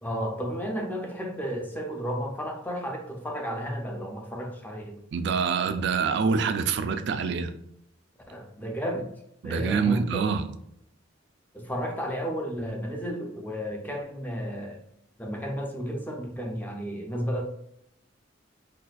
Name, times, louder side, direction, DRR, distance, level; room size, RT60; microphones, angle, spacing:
voice 1, 0.0-5.0 8.3-9.1 9.4-10.3 11.5-14.8 15.2-17.4, equal, 10° left, 2 dB, 0.5 m, -32 dB
voice 2, 5.1-7.5 9.4-10.4, right 5 dB, 65° right, 9 dB, 0.3 m, -26 dB
4.0 x 2.3 x 2.4 m, 0.75 s
head